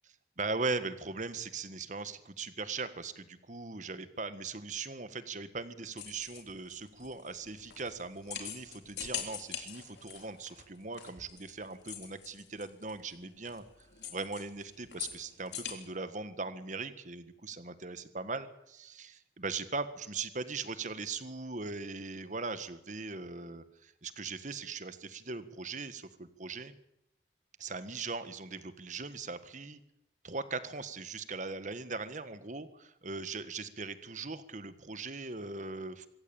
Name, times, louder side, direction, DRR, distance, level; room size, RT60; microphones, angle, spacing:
voice 1, 0.4-13.6 14.1-26.7 27.6-29.8 30.2-36.1, right 3 dB, 45° right, 12 dB, 1.6 m, -39 dB
sound 1, 6.0-15.7, left 9 dB, 75° left, 3.8 m, -44 dB
25.5 x 14.5 x 8.8 m, 0.81 s
head